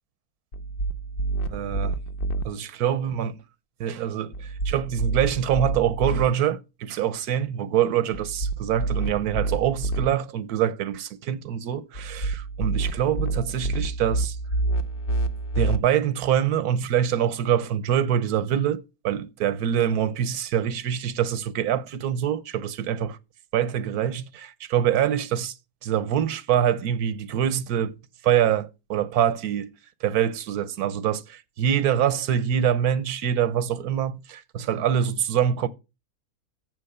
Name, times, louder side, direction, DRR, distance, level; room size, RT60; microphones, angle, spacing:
sound 1, 0.5-2.4 4.3-6.2 8.1-10.1 11.9-15.8, right 2 dB, 55° left, 0.7 m, -28 dB
voice 1, 1.5-2.0 2.4-3.4 3.8-4.3 4.6-14.4 15.6-23.2 23.5-25.5 25.8-28.0 28.2-29.7 30.0-35.7, right 9 dB, 80° right, 1.2 m, -25 dB
7.6 x 6.3 x 6.6 m
omnidirectional pair, 1.6 m